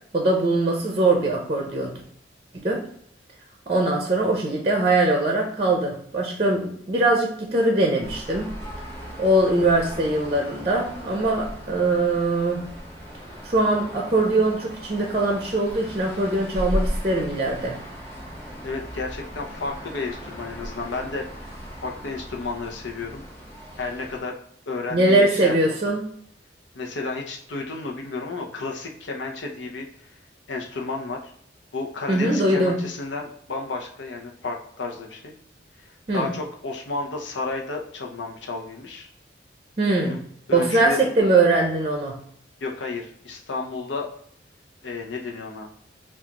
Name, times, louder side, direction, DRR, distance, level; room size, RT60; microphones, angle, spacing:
voice 1, 0.1-2.0 2.5-2.8 3.7-8.5 9.2-12.6 13.4-17.8 24.9-26.1 32.1-32.8 36.1-36.3 39.8-40.2 40.5-42.1, right 2 dB, 30° right, 1 dB, 0.6 m, -22 dB
sound 1, 8.0-24.2, equal, 15° left, 1.6 m, -36 dB
voice 2, 18.6-21.5 21.8-23.2 23.8-24.3 24.7-25.5 26.7-30.1 30.5-31.3 31.7-35.3 36.1-39.1 40.0-40.2 40.5-41.1 42.6-44.1 44.8-45.7, left 3 dB, 90° left, 2 dB, 0.7 m, -32 dB
6.0 x 2.5 x 2.9 m, 0.66 s
head